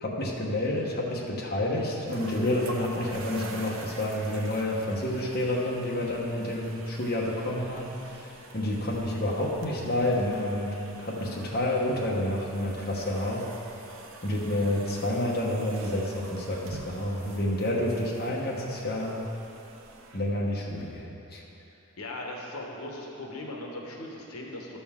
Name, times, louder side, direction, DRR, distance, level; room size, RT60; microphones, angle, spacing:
voice 1, 0.0-13.5 14.2-19.3 20.1-21.4, left 1 dB, 45° left, -4 dB, 1.1 m, -29 dB
sound 1, 2.1-20.9, right 2 dB, 65° right, 0.7 m, -46 dB
voice 2, 22.0-24.8, left 1 dB, 80° left, -1 dB, 1.1 m, -38 dB
12.0 x 6.9 x 3.6 m, 3.0 s
head